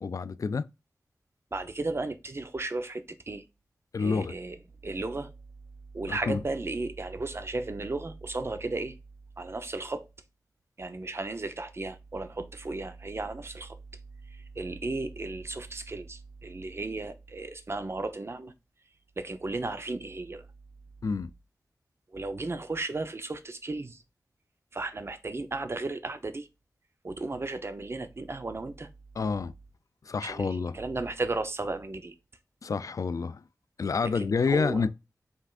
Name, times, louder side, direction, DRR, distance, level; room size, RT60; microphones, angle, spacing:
voice 1, 0.0-0.7 3.9-4.3 6.1-6.4 21.0-21.3 29.2-29.5 30.1-30.8 32.6-33.4 33.8-34.9, left 5 dB, 60° left, 0.3 m, -28 dB
voice 2, 1.5-3.4 4.0-4.6 4.8-5.3 5.9-9.0 9.4-10.1 10.8-13.8 14.3-18.5 19.2-20.5 22.1-24.0 24.7-26.5 27.0-28.9 30.2-32.1 34.0-34.9, right 2 dB, 40° right, 0.7 m, -35 dB
5.4 x 3.5 x 2.5 m
wide cardioid pair, 75°, 6 cm